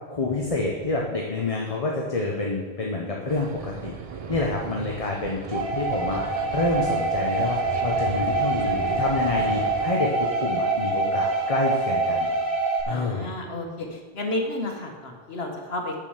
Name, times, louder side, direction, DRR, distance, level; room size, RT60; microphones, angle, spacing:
voice 1, 0.1-3.9 4.3-12.3 12.9-13.3, left 3 dB, 35° left, -1 dB, 1.1 m, -28 dB
sound 1, 3.3-9.9, right 5 dB, 45° right, 0.6 m, -37 dB
sound 2, 5.5-12.8, right 3 dB, 60° right, 1.8 m, -25 dB
voice 2, 12.9-15.9, left 1 dB, 75° left, 2 dB, 1.8 m, -31 dB
6.9 x 6.8 x 7.9 m, 1.4 s
omnidirectional pair, 1.1 m